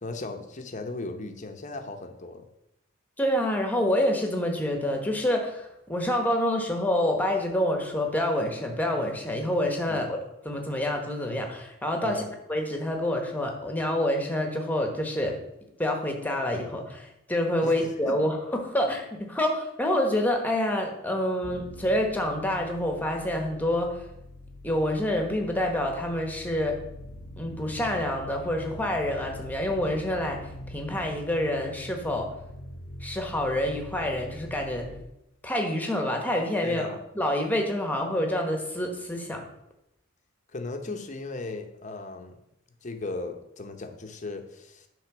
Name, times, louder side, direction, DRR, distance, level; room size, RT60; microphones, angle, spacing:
voice 1, 0.0-2.5 9.9-10.1 12.0-12.3 17.6-18.2 36.6-37.0 40.5-42.4 42.8-44.9, left 3 dB, 35° left, 5 dB, 0.9 m, -37 dB
voice 2, 3.2-10.2 10.4-15.4 15.8-18.4 18.6-24.0 24.6-26.8 27.4-30.4 30.7-32.3 33.0-34.9 35.4-36.9 37.1-39.4, left 1 dB, 10° left, 2 dB, 1.2 m, -27 dB
sound 1, 21.4-35.0, left 1 dB, 85° left, 1.1 m, -44 dB
10.0 x 3.7 x 6.1 m, 0.84 s
head